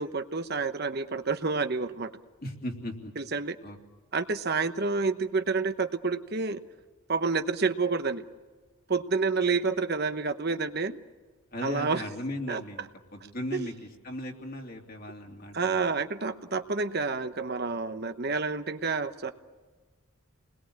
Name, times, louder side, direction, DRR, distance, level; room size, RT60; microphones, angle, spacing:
voice 1, 0.0-2.1 3.2-3.6 4.1-6.6 7.1-8.2 8.9-11.0 11.6-12.0 12.5-12.6 13.5-13.7 15.5-19.3, right 4 dB, 50° right, 8 dB, 1.0 m, -29 dB
voice 2, 2.4-3.1 3.6-3.8 11.5-15.8, left 1 dB, 40° left, 1 dB, 2.9 m, -37 dB
30.0 x 21.0 x 8.7 m, 1.3 s
head